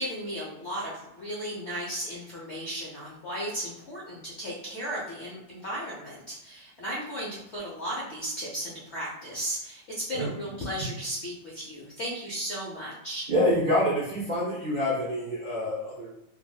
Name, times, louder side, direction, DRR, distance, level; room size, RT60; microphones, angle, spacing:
voice 1, 0.0-13.3, equal, 75° left, -5 dB, 0.6 m, -35 dB
voice 2, 13.3-16.1, left 1 dB, 85° right, -7 dB, 0.4 m, -26 dB
3.0 x 2.7 x 2.3 m, 0.83 s
omnidirectional pair, 2.1 m